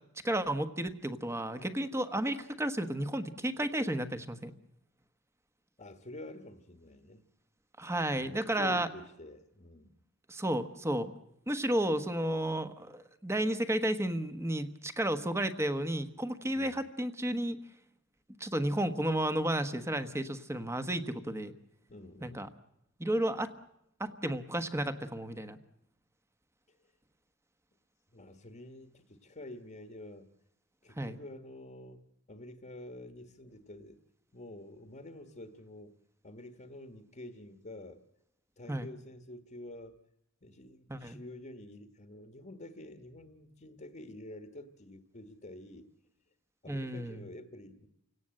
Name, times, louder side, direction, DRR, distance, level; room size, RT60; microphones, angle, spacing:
voice 1, 0.2-4.5 7.8-8.9 10.3-11.1 11.5-17.6 18.4-21.5 22.2-22.5 23.0-23.5 24.0-25.6 31.0-31.2 38.7-38.9 40.9-41.2 46.7-47.2, right 1 dB, 15° right, 10 dB, 1.2 m, -32 dB
voice 2, 5.8-7.2 8.1-10.0 16.5-16.8 21.9-22.5 28.1-30.3 30.8-34.0 34.3-35.9 36.2-38.0 38.6-40.0 40.4-45.9 46.6-47.9, left 1 dB, 40° left, 7 dB, 1.4 m, -48 dB
29.0 x 17.5 x 7.7 m, 0.83 s
head